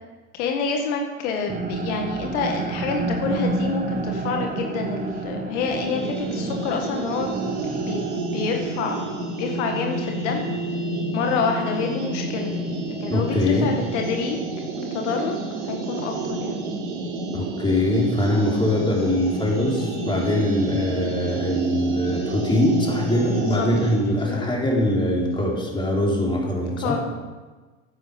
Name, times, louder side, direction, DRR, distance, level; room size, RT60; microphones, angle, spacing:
voice 1, 0.3-7.5 7.7-9.0 9.4-10.4 11.1-12.5 13.0-14.4 14.8-15.3 15.6-16.6 23.3-24.5 26.8-27.0, left 5 dB, 70° left, 3 dB, 1.8 m, -28 dB
sound 1, 1.5-8.2, right 3 dB, 25° right, 1.3 m, -29 dB
sound 2, 5.7-24.0, right 2 dB, 70° right, 4.9 m, -30 dB
voice 2, 13.1-13.7 17.3-27.0, left 1 dB, 15° left, -3 dB, 4.3 m, -22 dB
11.5 x 9.1 x 7.1 m, 1.3 s
hypercardioid pair, 90°, 36 cm